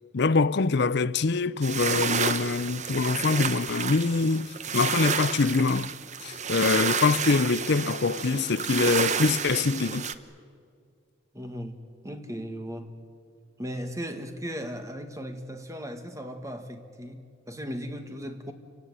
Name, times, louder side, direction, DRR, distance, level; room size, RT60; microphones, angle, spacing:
voice 1, 0.1-5.9 6.2-10.1, left 4 dB, 55° left, 0.6 m, -24 dB
sound 1, 1.6-10.1, right 6 dB, 35° right, 0.9 m, -30 dB
voice 2, 11.3-11.8 12.0-12.9 13.6-18.5, equal, 15° right, 1.8 m, -37 dB
28.5 x 17.5 x 9.6 m
head